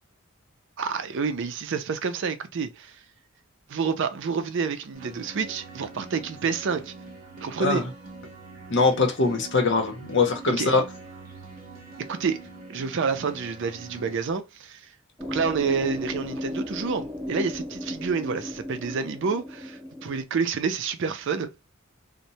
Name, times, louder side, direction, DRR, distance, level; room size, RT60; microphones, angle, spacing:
voice 1, 0.8-3.0 3.7-6.9 7.4-7.8 10.5-10.7 12.0-12.4 12.7-14.8 15.3-21.5, right 5 dB, 60° right, 0.4 m, -28 dB
sound 1, 4.9-14.2, right 3 dB, 40° right, 0.8 m, -44 dB
voice 2, 8.7-10.8, left 4 dB, 60° left, 0.8 m, -22 dB
sound 2, 15.2-20.2, left 1 dB, 5° right, 0.6 m, -35 dB
3.0 x 2.1 x 2.7 m
head